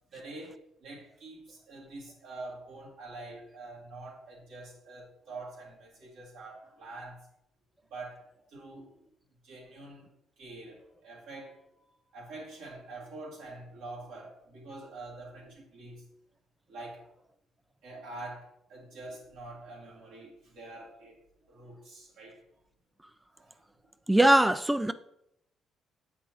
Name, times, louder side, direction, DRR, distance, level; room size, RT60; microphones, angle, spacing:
voice 1, 0.1-7.3 7.9-9.0 9.4-10.1 10.4-16.1 16.7-17.0 17.8-21.2 21.5-22.4 23.4-23.6, right 2 dB, 85° right, 2.2 m, -46 dB
voice 2, 24.1-24.9, right 1 dB, 10° right, 0.3 m, -21 dB
7.5 x 4.7 x 3.1 m
supercardioid pair, 70°, 0 cm